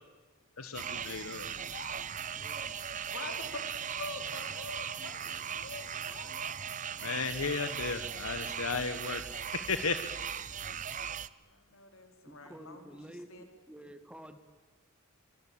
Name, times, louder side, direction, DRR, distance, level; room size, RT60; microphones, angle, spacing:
voice 1, 0.6-1.5 7.0-10.1, left 4 dB, 85° left, 10 dB, 1.4 m, -35 dB
sound 1, 0.7-11.3, right 8 dB, 35° right, 0.8 m, -38 dB
voice 2, 1.4-2.0 3.0-3.6 4.0-6.5 11.4-13.4, left 3 dB, 65° left, 5 dB, 4.8 m, -46 dB
voice 3, 2.1-2.8 12.3-13.3 13.7-14.4, equal, 5° right, 9 dB, 1.6 m, -50 dB
24.5 x 24.0 x 8.7 m, 1.3 s
head